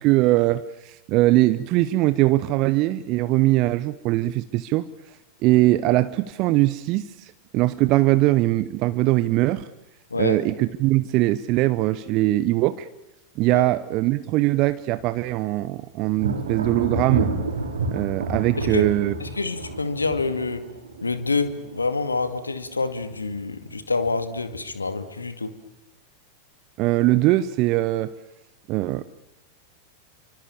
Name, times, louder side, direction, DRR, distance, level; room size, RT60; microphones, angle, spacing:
voice 1, 0.0-4.9 5.4-9.7 10.2-12.9 13.4-17.3 17.9-19.1 26.8-28.1 28.7-29.0, right 17 dB, 40° right, 14 dB, 0.9 m, -21 dB
voice 2, 10.1-10.4 13.5-13.7 18.6-18.8 19.2-20.7 21.0-25.5, left 3 dB, 80° left, 10 dB, 2.2 m, -27 dB
Thunder, 16.2-22.6 23.0-23.5 24.0-24.8, right 3 dB, 70° right, 4.5 m, -30 dB
29.0 x 24.5 x 7.3 m, 0.90 s
figure-of-eight pair, 90°, 0 cm